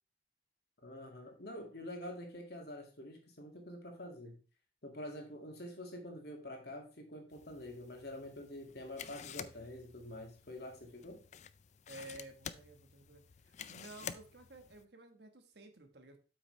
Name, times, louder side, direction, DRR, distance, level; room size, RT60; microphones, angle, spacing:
voice 1, 0.8-4.4 4.8-11.2, left 1 dB, 60° left, 2 dB, 2.0 m, -47 dB
sound 1, 7.3-14.8, left 8 dB, 40° left, 0.4 m, -50 dB
voice 2, 11.9-16.2, right 2 dB, 60° right, 6 dB, 1.3 m, -53 dB
8.2 x 5.9 x 3.2 m, 0.35 s
head